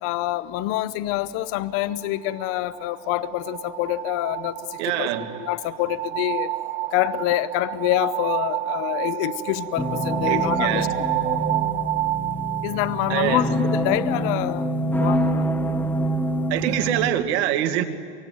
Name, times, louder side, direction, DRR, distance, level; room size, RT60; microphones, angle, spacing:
voice 1, 0.0-6.5 6.9-11.3 12.6-15.5, left 15 dB, 45° left, 16 dB, 0.7 m, -26 dB
sound 1, 1.9-13.6, right 13 dB, 25° right, 0.7 m, -29 dB
voice 2, 4.8-5.3 10.3-10.9 13.1-13.5 16.5-17.8, right 11 dB, 85° right, 7 dB, 2.3 m, -24 dB
sound 2, 9.8-17.1, right 1 dB, 5° left, 1.0 m, -26 dB
24.5 x 23.5 x 9.4 m, 2.2 s
cardioid pair, 165°, 32 cm